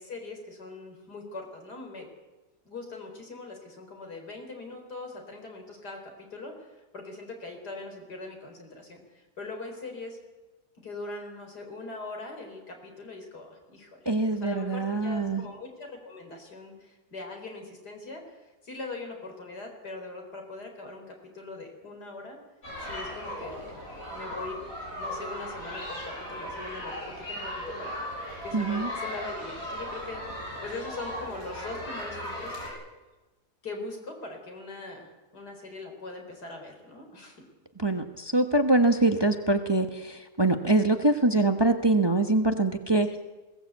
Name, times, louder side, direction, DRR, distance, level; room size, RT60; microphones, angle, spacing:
voice 1, 0.0-2.1 2.6-10.2 10.8-22.4 22.8-23.8 24.1-24.6 25.0-28.1 28.4-32.8 33.6-37.5 43.1-43.2, left 3 dB, 85° left, 3 dB, 4.8 m, -41 dB
voice 2, 14.0-15.4 28.5-28.9 37.8-43.1, right 2 dB, 15° right, 6 dB, 1.1 m, -24 dB
sound 1, 22.6-32.7, equal, 55° left, 7.0 m, -37 dB
21.0 x 18.0 x 8.3 m, 1.1 s
omnidirectional pair, 1.7 m